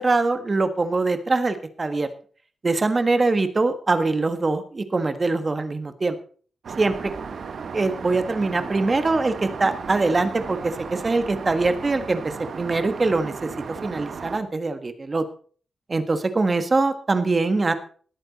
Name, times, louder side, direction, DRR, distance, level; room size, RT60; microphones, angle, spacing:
voice 1, 0.0-2.1 2.6-6.1 6.8-7.1 7.7-13.5 13.8-15.2 15.9-17.7, right 3 dB, 25° right, 10 dB, 1.4 m, -23 dB
Aircraft, 6.6-14.4, right 5 dB, 50° right, 1.4 m, -35 dB
18.5 x 8.9 x 4.2 m, 0.42 s
wide cardioid pair, 170°, 0 cm